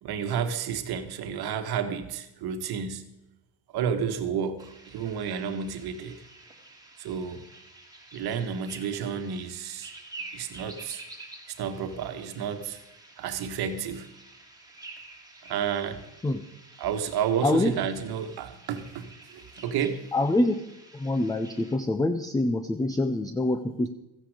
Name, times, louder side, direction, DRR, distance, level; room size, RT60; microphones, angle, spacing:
voice 1, 0.0-3.1 3.7-6.2 7.0-7.4 8.1-9.9 10.3-11.0 11.5-12.8 13.2-14.1 15.4-16.1 16.8-20.1, right 7 dB, 60° right, 1.5 m, -31 dB
sound 1, 4.6-21.8, right 2 dB, 10° right, 2.2 m, -49 dB
voice 2, 20.1-20.6 20.9-23.9, left 2 dB, 10° left, 0.6 m, -25 dB
14.5 x 10.0 x 4.9 m
supercardioid pair, 100°, 44 cm